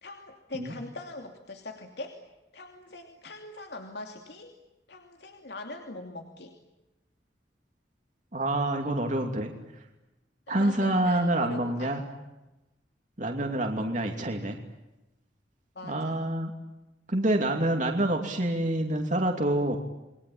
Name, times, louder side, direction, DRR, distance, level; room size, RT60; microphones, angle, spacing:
voice 1, 0.0-2.2 2.5-4.5 4.9-6.5 10.5-12.2 15.7-16.3, left 2 dB, 65° left, 4 dB, 2.8 m, -42 dB
voice 2, 8.3-9.5 10.5-12.0 13.2-14.6 15.8-16.5 17.1-19.8, right 1 dB, 45° right, 2 dB, 2.8 m, -27 dB
30.0 x 22.0 x 8.8 m, 1.0 s
head